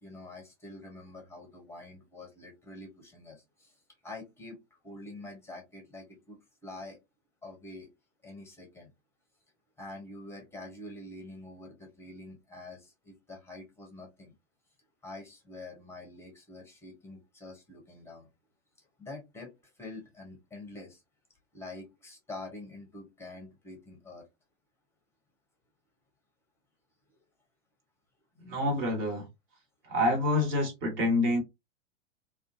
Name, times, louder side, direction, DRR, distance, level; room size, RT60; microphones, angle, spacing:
voice 1, 0.0-3.8 4.0-4.6 4.8-7.0 7.4-7.9 8.2-8.9 9.8-14.3 15.0-18.3 18.8-21.0 21.5-24.3, left 2 dB, 5° left, 0.7 m, -46 dB
voice 2, 28.4-29.2 29.8-31.4, left 1 dB, 40° right, 1.4 m, -27 dB
2.4 x 2.3 x 2.5 m
figure-of-eight pair, 100°, 38 cm